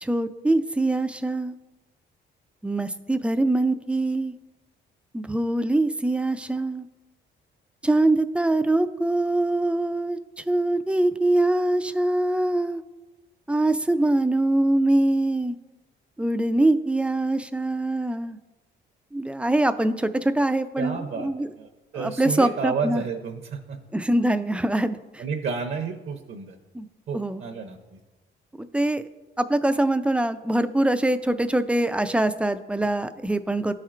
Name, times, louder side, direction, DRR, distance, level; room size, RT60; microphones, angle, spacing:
voice 1, 0.0-1.6 2.6-4.3 5.1-6.9 7.8-12.8 13.5-15.6 16.2-18.4 19.1-21.5 21.9-23.0 23.9-25.2 26.7-26.9 27.1-27.4 28.6-29.0 29.4-33.7, right 1 dB, 5° right, 10 dB, 0.3 m, -23 dB
voice 2, 20.8-21.3 21.6-23.8 25.2-26.6 27.1-28.0, right 5 dB, 55° right, 4 dB, 0.7 m, -31 dB
12.0 x 4.3 x 2.5 m, 1.1 s
cardioid pair, 90°, 20 cm